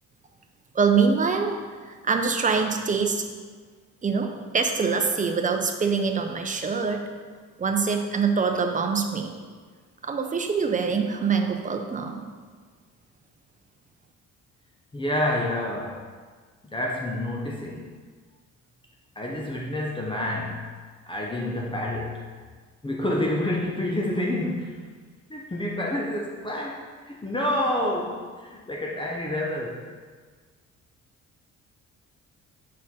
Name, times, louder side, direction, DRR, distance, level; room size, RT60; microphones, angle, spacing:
voice 1, 0.7-3.3 4.0-7.0 7.6-9.3 10.0-12.2, right 5 dB, 25° right, 4 dB, 0.7 m, -24 dB
voice 2, 14.9-16.0 16.7-17.9 19.2-20.7 21.1-22.3 22.8-24.8 25.3-29.8, left 1 dB, 15° left, -2 dB, 0.7 m, -28 dB
6.2 x 4.2 x 4.2 m, 1.5 s
cardioid pair, 90°, 30 cm